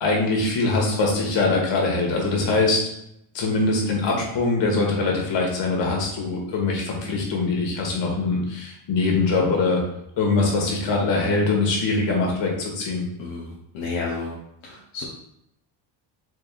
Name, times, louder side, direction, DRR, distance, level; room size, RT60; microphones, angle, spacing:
voice 1, 0.0-2.8 3.3-9.8 10.2-13.0, left 3 dB, 65° left, -1 dB, 1.5 m, -22 dB
voice 2, 13.2-14.3 14.6-15.0, left 4 dB, 85° left, -3 dB, 0.9 m, -31 dB
4.4 x 3.4 x 2.4 m, 0.77 s
cardioid pair, 95°, 48 cm